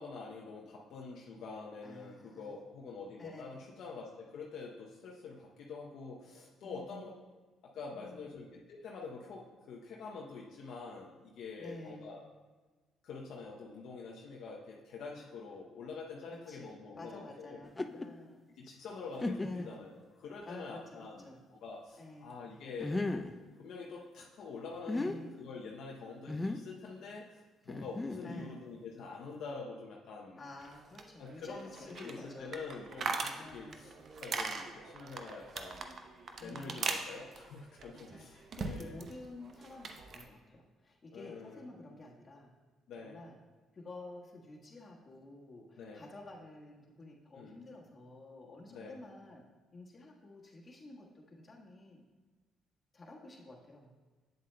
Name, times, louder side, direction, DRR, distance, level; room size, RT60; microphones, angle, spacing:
voice 1, 0.0-7.1 7.6-12.2 13.0-17.8 18.6-23.0 23.6-30.4 31.2-31.7 31.9-33.9 34.2-36.0 36.4-39.0 41.1-41.6 42.9-43.2 45.8-46.0 47.4-47.6 48.7-49.0, left 4 dB, 70° left, -2 dB, 0.6 m, -46 dB
voice 2, 1.8-2.5 3.2-3.7 6.6-7.0 7.9-8.3 11.6-12.2 16.3-18.5 19.4-19.7 20.5-21.4 22.0-22.3 24.9-25.3 28.2-28.6 30.4-32.6 33.3-33.9 36.4-36.8 37.9-42.5 43.0-43.4 43.7-49.4 49.7-52.0 52.9-54.0, left 2 dB, 35° left, -2 dB, 1.4 m, -51 dB
sound 1, 17.6-18.1 18.7-18.8 19.2-19.8 20.4-20.5 22.8-23.4 24.7-25.2 26.3-26.7 27.7-28.5, left 2 dB, 20° left, 0.4 m, -36 dB
sound 2, 30.6-39.1 39.4-40.3, right 4 dB, 55° right, 0.6 m, -41 dB
7.9 x 7.5 x 2.2 m, 1.3 s
supercardioid pair, 65°, 0 cm